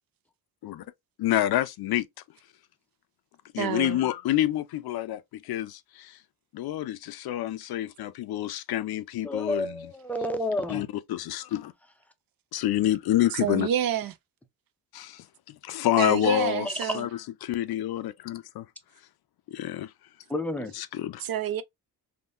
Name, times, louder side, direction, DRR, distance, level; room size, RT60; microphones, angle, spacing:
voice 1, 1.2-2.1 3.5-6.1 6.5-9.8 10.7-11.7 12.5-13.7 14.9-15.2 15.6-16.7 16.9-17.1 17.4-18.7 19.5-19.9 20.8-21.2, left 13 dB, 60° left, 0.5 m, -28 dB
voice 2, 3.6-4.0 13.4-14.1 16.0-17.1 21.2-21.6, right 10 dB, 55° right, 0.5 m, -28 dB
voice 3, 9.2-10.9 16.6-16.7 20.3-20.7, left 1 dB, 5° left, 0.4 m, -30 dB
3.6 x 2.6 x 2.4 m
cardioid pair, 140°, 42 cm